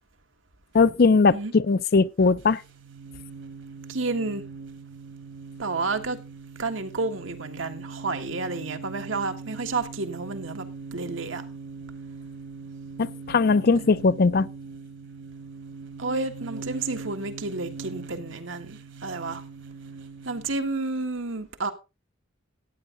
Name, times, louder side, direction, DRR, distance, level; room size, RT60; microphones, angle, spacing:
voice 1, 0.7-2.6 13.0-14.5, left 4 dB, 50° left, 0.5 m, -20 dB
sound 1, 2.4-20.6, right 4 dB, 65° right, 1.7 m, -41 dB
voice 2, 3.9-4.4 5.6-6.2 6.6-10.7 10.9-11.4 13.7-13.8 16.0-19.4 20.3-21.7, right 3 dB, 85° right, 1.6 m, -30 dB
14.0 x 9.3 x 3.8 m
head